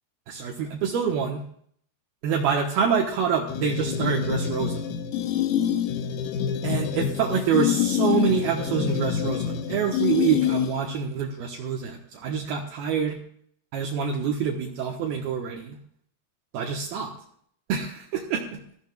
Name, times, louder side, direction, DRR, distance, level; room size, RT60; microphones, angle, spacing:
voice 1, 0.3-1.4 2.2-4.8 6.6-13.2 13.7-15.8 16.5-17.1 17.7-18.6, right 7 dB, 75° right, 1 dB, 2.8 m, -26 dB
sound 1, 3.5-11.0, left 9 dB, 80° left, 2.0 m, -26 dB
21.0 x 14.5 x 2.3 m, 0.63 s
omnidirectional pair, 4.9 m